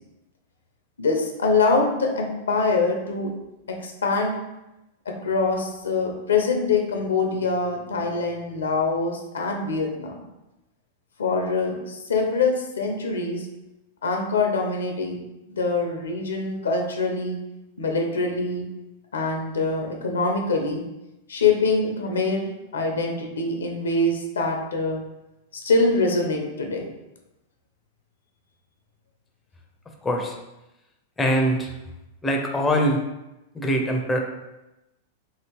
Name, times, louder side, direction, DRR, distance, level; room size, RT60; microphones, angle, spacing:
voice 1, 1.0-3.3 3.8-4.3 5.2-10.2 11.2-13.5 14.0-15.2 15.6-17.4 17.8-18.6 19.1-20.8 21.3-25.0 25.5-26.9, left 3 dB, 90° left, 2 dB, 0.6 m, -24 dB
voice 2, 30.0-30.4 31.2-31.7 32.2-33.0 33.5-34.2, equal, 15° left, 2 dB, 0.5 m, -22 dB
3.0 x 2.8 x 2.9 m, 0.96 s
hypercardioid pair, 115°, 0 cm